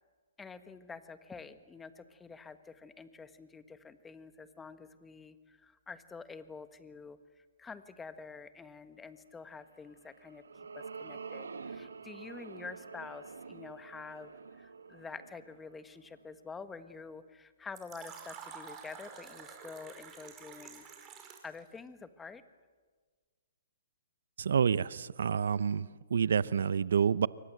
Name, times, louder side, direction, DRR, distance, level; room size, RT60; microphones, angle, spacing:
voice 1, 0.4-10.4 10.7-20.9 21.4-22.4, left 5 dB, 10° left, 11 dB, 1.5 m, -48 dB
sound 1, 9.9-16.4, right 5 dB, 90° right, 1.7 m, -47 dB
Fill (with liquid), 17.8-21.6, right 6 dB, 20° right, 5.3 m, -49 dB
voice 2, 24.4-27.3, right 7 dB, 75° right, 19 dB, 0.7 m, -28 dB
28.0 x 24.0 x 7.9 m, 1.5 s
hypercardioid pair, 140°, 0 cm